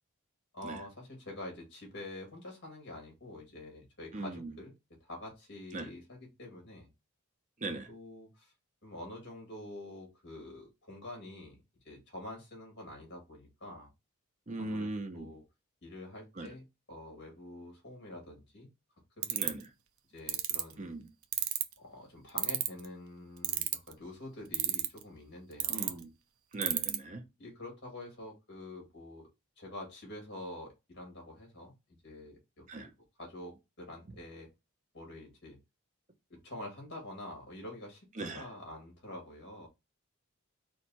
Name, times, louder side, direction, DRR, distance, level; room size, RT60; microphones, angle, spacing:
voice 1, 0.5-4.7 5.0-6.9 7.6-8.5 8.8-11.6 11.8-13.9 14.6-15.4 15.8-18.7 19.2-19.6 20.1-20.9 21.8-26.0 27.4-29.3 29.6-31.7 32.0-32.9 33.2-34.5 34.9-35.6 36.3-39.7, left 1 dB, 50° left, 2.1 m, -47 dB
voice 2, 4.1-4.5 5.7-5.9 7.6-7.9 14.5-15.3 16.4-16.5 19.3-19.6 20.8-21.0 25.7-26.1 26.5-27.2 32.7-32.9 38.2-38.4, right 2 dB, 35° right, 0.6 m, -39 dB
sound 1, 19.2-19.6 20.3-20.6 21.3-21.7 22.4-22.9 23.4-23.9 24.5-25.0 25.6-25.9 26.6-27.0, right 12 dB, 70° right, 0.5 m, -29 dB
4.4 x 2.3 x 4.1 m
head